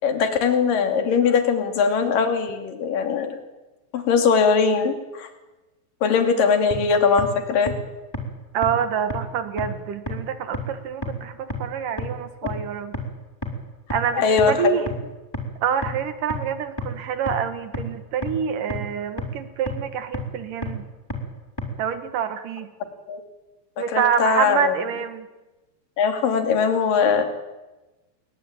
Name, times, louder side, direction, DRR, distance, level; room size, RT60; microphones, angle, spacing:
voice 1, 0.0-3.4 3.9-5.3 6.0-7.7 14.2-14.8 23.1-23.2 23.9-24.8 26.0-27.2, left 5 dB, 55° left, 6 dB, 4.2 m, -20 dB
sound 1, 6.7-6.8 7.2-7.3 7.7-7.8 8.1-8.2 8.6-8.7 9.1-9.2 9.6-9.7 10.1-10.2 10.5-10.6 11.0-11.1 11.5-11.6 12.0-12.1 12.5-12.6 12.9-13.0 13.4-13.5 13.9-14.0 14.4-14.5 14.9-15.0 15.3-15.4 15.8-15.9 16.3-16.4 16.8-16.9 17.3-17.4 17.7-17.8 18.2-18.3 18.7-18.8 19.2-19.3 19.7-19.8 20.1-20.2 20.6-20.7 21.1-21.2 21.6-21.7, equal, 5° left, 3.2 m, -29 dB
voice 2, 8.5-13.0 13.9-14.9 15.6-20.9 21.8-22.7 23.8-25.3, right 8 dB, 60° right, 10 dB, 2.7 m, -26 dB
28.0 x 23.0 x 9.0 m, 1.1 s
omnidirectional pair, 4.9 m